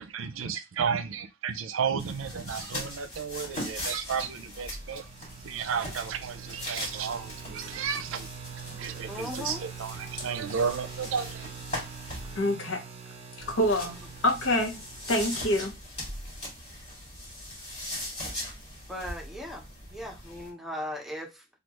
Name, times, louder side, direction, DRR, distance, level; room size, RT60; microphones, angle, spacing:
voice 1, 0.0-5.1 5.4-8.3 8.8-11.5, right 6 dB, 80° right, 0.5 m, -33 dB
sound 1, 2.0-12.4 13.4-20.5, left 1 dB, 30° left, 2.2 m, -40 dB
sound 2, 4.3-16.1, right 7 dB, 30° right, 0.5 m, -44 dB
voice 2, 9.1-9.6 12.7-12.8 18.9-19.6 19.9-21.6, left 1 dB, ahead, 0.8 m, -38 dB
voice 3, 12.3-12.8 13.5-14.8 15.1-15.7, left 1 dB, 85° left, 0.9 m, -26 dB
3.4 x 2.3 x 3.0 m
head